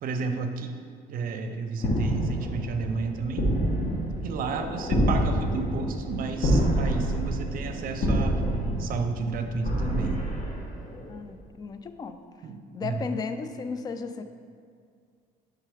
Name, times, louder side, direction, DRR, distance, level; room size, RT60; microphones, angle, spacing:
voice 1, 0.0-0.8 1.1-3.6 4.2-8.4 8.8-10.3 12.4-13.1, right 4 dB, 55° right, 7 dB, 0.6 m, -32 dB
sound 1, 1.8-11.1, right 1 dB, 50° left, 1.4 m, -27 dB
voice 2, 11.1-12.2 12.7-14.2, left 5 dB, 25° left, 9 dB, 0.3 m, -34 dB
6.5 x 3.7 x 4.9 m, 2.1 s
cardioid pair, 110°, 17 cm